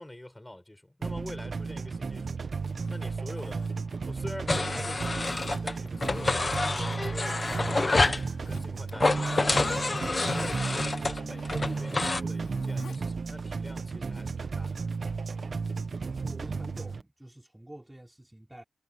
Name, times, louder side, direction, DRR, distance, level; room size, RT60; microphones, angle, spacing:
voice 1, 0.0-2.4 2.9-3.7 4.0-8.1 8.5-10.5 10.9-14.8, left 1 dB, 10° left, 5.9 m, -45 dB
sound 1, 1.0-17.0, right 4 dB, 45° right, 1.6 m, -34 dB
Zipper (clothing), 2.6-4.6 5.2-6.6 6.9-7.7 8.2-8.9 9.2-13.0 13.3-13.4, left 6 dB, 75° left, 4.9 m, -51 dB
sound 2, 4.5-5.7 6.0-8.3 8.9-12.2, left 3 dB, 25° left, 1.2 m, -28 dB
voice 2, 16.2-18.6, right 1 dB, 10° right, 3.5 m, -47 dB
wide cardioid pair, 145°, 0 cm